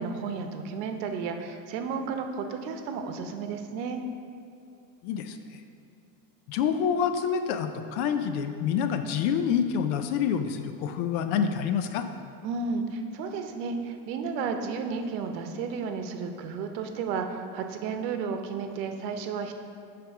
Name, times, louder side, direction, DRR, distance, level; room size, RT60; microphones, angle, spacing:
voice 1, 0.0-4.0 12.4-19.6, right 5 dB, 80° right, 6 dB, 0.9 m, -33 dB
voice 2, 5.0-5.6 6.5-12.1, left 7 dB, 60° left, 8 dB, 0.6 m, -27 dB
9.0 x 3.5 x 5.9 m, 2.4 s
cardioid pair, 155°, 50 cm